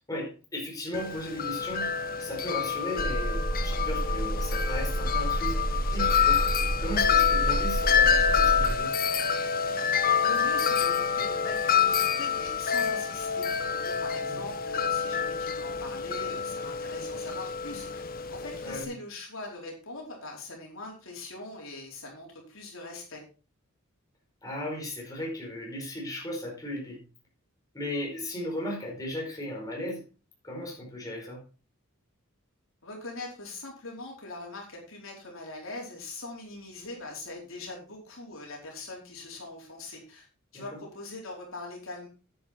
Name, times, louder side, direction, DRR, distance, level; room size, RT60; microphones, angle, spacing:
voice 1, 0.1-1.9 2.2-5.6 5.9-6.4 6.8-8.9 14.3-14.5 18.6-18.9 24.4-27.0 27.7-30.0 30.4-31.4 40.5-40.8, left 1 dB, 15° left, -2 dB, 4.9 m, -36 dB
Wind chime, 0.9-18.8, left 7 dB, 45° left, 0.9 m, -27 dB
sound 1, 3.0-8.8, right 1 dB, 70° right, 1.0 m, -30 dB
voice 2, 10.0-23.2 32.8-40.3 40.5-42.1, left 2 dB, 65° left, -1 dB, 4.5 m, -42 dB
10.0 x 9.3 x 4.5 m, 0.34 s
head